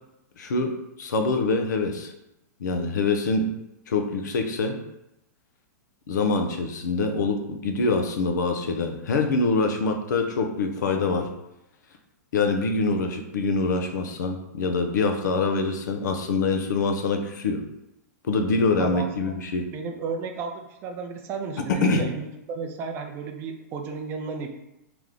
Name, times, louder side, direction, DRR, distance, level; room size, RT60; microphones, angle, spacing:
voice 1, 0.4-2.1 2.6-3.5 3.9-4.8 6.1-11.3 12.3-17.6 18.3-19.7 21.7-22.0, left 3 dB, 80° left, 4 dB, 0.7 m, -25 dB
voice 2, 18.8-19.4 19.7-24.5, right 5 dB, 25° right, 4 dB, 0.4 m, -33 dB
3.4 x 3.0 x 3.8 m, 0.87 s
hypercardioid pair, 155°, 10 cm